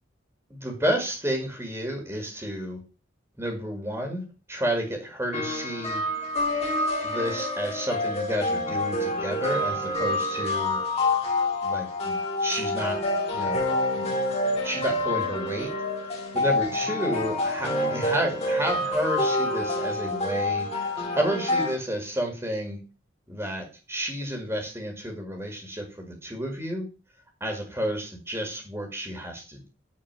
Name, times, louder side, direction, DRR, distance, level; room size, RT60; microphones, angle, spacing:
voice 1, 0.5-2.8 3.4-4.2 4.5-6.0 7.0-10.8 11.6-13.0 13.3-14.1 14.6-15.7 16.0-22.8 23.3-26.9 27.4-29.7, equal, 15° right, 2 dB, 2.1 m, -31 dB
sound 1, 5.3-21.7, left 2 dB, 30° left, 2.5 m, -27 dB
9.5 x 4.4 x 7.0 m, 0.34 s
head